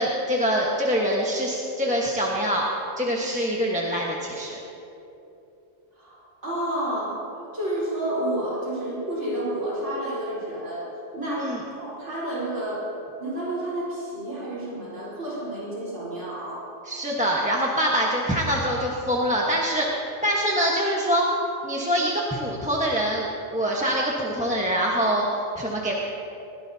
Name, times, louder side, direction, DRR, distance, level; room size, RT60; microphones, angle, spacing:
voice 1, 0.0-2.7 3.0-4.6 11.4-11.6 16.9-21.3 21.6-25.3 25.6-26.0, equal, 5° right, -4 dB, 1.1 m, -24 dB
voice 2, 6.4-7.2 7.5-10.9 11.1-12.8 13.2-16.7, right 1 dB, 70° right, -7 dB, 4.4 m, -30 dB
21.0 x 17.0 x 2.8 m, 3.0 s
omnidirectional pair, 1.3 m